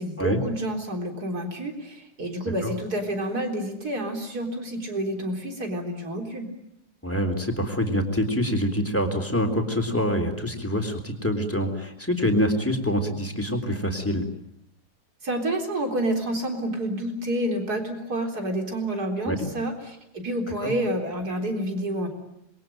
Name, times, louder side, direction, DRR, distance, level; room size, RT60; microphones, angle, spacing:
voice 1, 0.0-6.5 15.2-22.1, right 1 dB, 65° right, 3 dB, 4.5 m, -29 dB
voice 2, 7.0-14.2 19.3-19.4 20.6-20.7, equal, 10° left, 3 dB, 3.6 m, -25 dB
26.5 x 22.5 x 9.1 m, 0.82 s
omnidirectional pair, 1.8 m